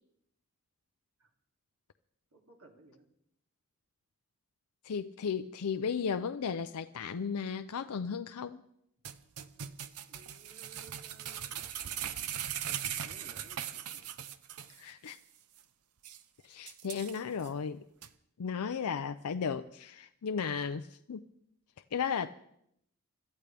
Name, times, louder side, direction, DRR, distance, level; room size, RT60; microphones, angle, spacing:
voice 1, 2.3-3.1 10.1-11.6 11.9-12.1 12.7-14.1, right 3 dB, 70° right, 0 dB, 2.6 m, -58 dB
voice 2, 4.8-8.6 14.7-15.2 16.4-17.8 18.4-21.2 21.9-22.3, left 6 dB, 80° left, 9 dB, 0.5 m, -35 dB
sound 1, 9.0-14.8 15.1-15.2 15.6-15.7 16.0-16.2 16.7-17.5 18.0-18.1, right 9 dB, 90° right, 0.8 m, -39 dB
25.5 x 13.5 x 3.4 m, 0.75 s
head